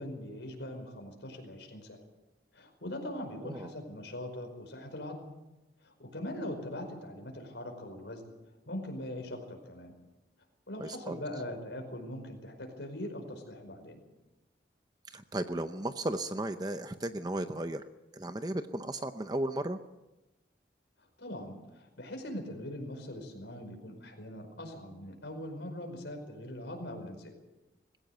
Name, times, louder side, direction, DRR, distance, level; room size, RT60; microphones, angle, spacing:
voice 1, 0.0-2.0 2.5-5.3 5.8-8.3 8.7-9.9 10.7-14.0 21.2-27.3, left 1 dB, 85° left, 4 dB, 5.1 m, -41 dB
voice 2, 3.4-3.7 10.8-11.2 15.1-17.8 18.1-19.8, right 1 dB, 20° right, 9 dB, 0.7 m, -35 dB
20.5 x 16.5 x 7.9 m, 1.0 s
head